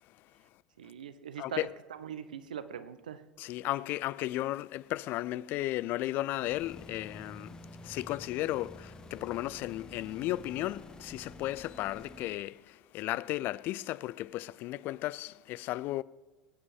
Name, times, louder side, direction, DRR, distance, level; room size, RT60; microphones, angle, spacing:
voice 1, 0.8-3.2, right 8 dB, 75° right, 0.9 m, -42 dB
voice 2, 1.4-1.7 3.4-16.0, left 16 dB, 50° left, 0.4 m, -35 dB
sound 1, 6.4-12.4, left 2 dB, 15° left, 1.4 m, -49 dB
21.0 x 9.6 x 5.4 m
figure-of-eight pair, 75°, 4 cm